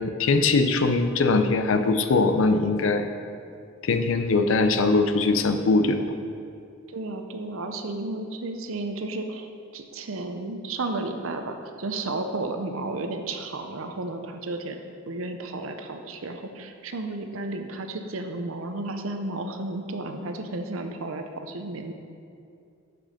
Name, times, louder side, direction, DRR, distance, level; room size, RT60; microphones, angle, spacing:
voice 1, 0.0-3.1 3.8-6.0, left 3 dB, 70° left, 8 dB, 0.5 m, -21 dB
voice 2, 6.9-9.5 9.7-14.8 15.1-21.9, right 2 dB, 75° right, 6 dB, 0.7 m, -33 dB
6.2 x 6.1 x 6.4 m, 2.5 s
head